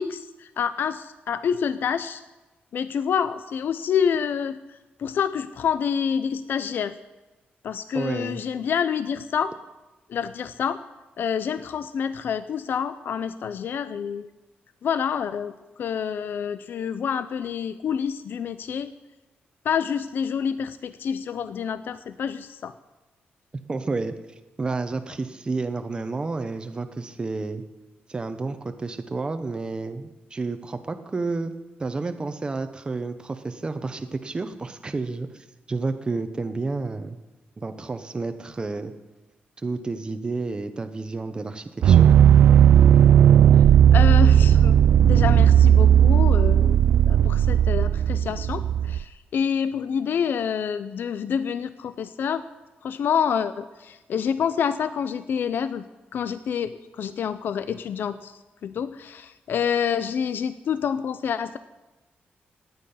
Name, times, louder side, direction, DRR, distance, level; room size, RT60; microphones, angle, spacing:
voice 1, 0.0-2.2 2.7-4.6 5.0-6.9 7.6-9.5 10.1-10.8 11.2-14.3 14.8-15.5 15.8-18.9 19.6-22.7 43.5-43.6 43.9-46.8 47.1-52.4 52.8-55.8 56.1-61.6, left 7 dB, 70° left, 13 dB, 0.5 m, -27 dB
voice 2, 7.9-8.4 23.7-24.1 24.6-27.6 28.1-31.5 31.8-37.2 37.6-38.9 39.6-42.1, right 3 dB, 25° right, 8 dB, 0.9 m, -30 dB
sound 1, 41.8-49.0, right 9 dB, 80° right, 0.3 m, -15 dB
16.0 x 9.6 x 5.6 m, 1.1 s
wide cardioid pair, 130°, 4 cm